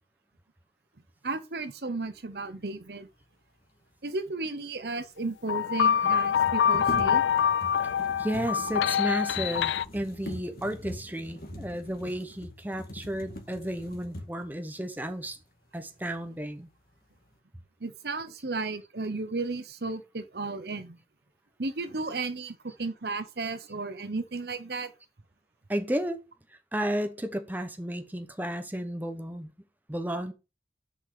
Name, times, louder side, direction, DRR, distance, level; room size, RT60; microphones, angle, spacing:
voice 1, 1.2-3.1 4.0-7.2 17.8-21.0 21.6-24.9, right 3 dB, 65° right, 0.9 m, -34 dB
sound 1, 4.8-4.9 5.0-5.1 6.2-14.6 15.2-15.4 15.8-16.4 16.8-17.3, left 1 dB, 55° left, 1.7 m, -42 dB
sound 2, 5.5-9.9, left 8 dB, 85° left, 0.3 m, -25 dB
voice 2, 8.0-15.4 15.7-16.7 25.7-26.2 26.7-29.5 29.9-30.3, right 1 dB, 10° right, 0.9 m, -33 dB
6.5 x 5.7 x 6.8 m
head